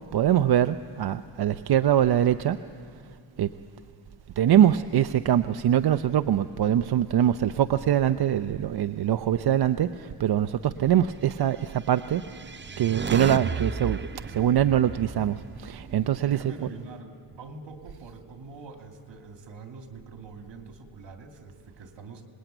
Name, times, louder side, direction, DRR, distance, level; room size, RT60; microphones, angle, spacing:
voice 1, 0.1-2.6 3.4-3.5 4.4-12.5 12.8-16.5, right 10 dB, 60° right, 0.7 m, -23 dB
sound 1, 12.0-16.3, right 5 dB, 25° right, 0.6 m, -34 dB
voice 2, 16.2-22.3, right 4 dB, 75° right, 2.7 m, -44 dB
26.5 x 20.5 x 9.1 m
cardioid pair, 95°, 43 cm